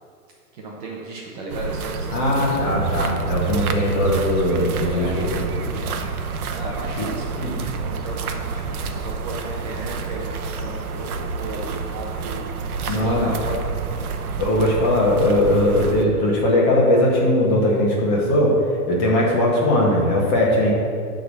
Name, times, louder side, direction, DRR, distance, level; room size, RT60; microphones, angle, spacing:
voice 1, 0.5-2.6 4.8-5.2 5.7-6.1 6.5-10.3 10.6-12.6 12.8-13.6 13.9-14.4, right 2 dB, 25° right, -3 dB, 1.0 m, -35 dB
sound 1, 1.5-16.0, right 5 dB, 65° right, 1.0 m, -28 dB
voice 2, 2.1-5.8 7.4-7.7 12.9-13.3 14.4-18.6 18.9-20.7, left 1 dB, 25° left, -4 dB, 2.0 m, -20 dB
11.0 x 3.9 x 6.7 m, 2.3 s
hypercardioid pair, 160°, 47 cm